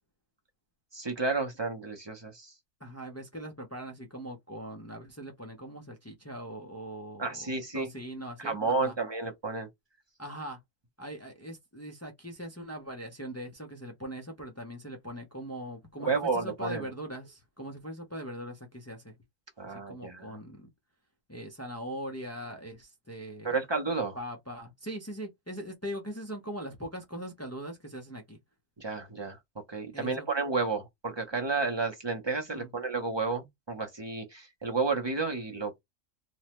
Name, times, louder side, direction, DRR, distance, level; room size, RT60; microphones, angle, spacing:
voice 1, 0.9-2.5 7.2-7.9 8.4-9.7 16.0-16.9 19.6-20.3 23.4-24.2 28.8-29.4 29.7-35.8, right 4 dB, 30° right, 0.5 m, -31 dB
voice 2, 2.8-8.9 10.2-10.6 11.0-19.1 19.7-20.7 21.3-23.6 24.1-28.4 29.9-30.3 32.5-32.7, equal, 25° left, 0.3 m, -41 dB
3.3 x 2.1 x 2.9 m
omnidirectional pair, 1.4 m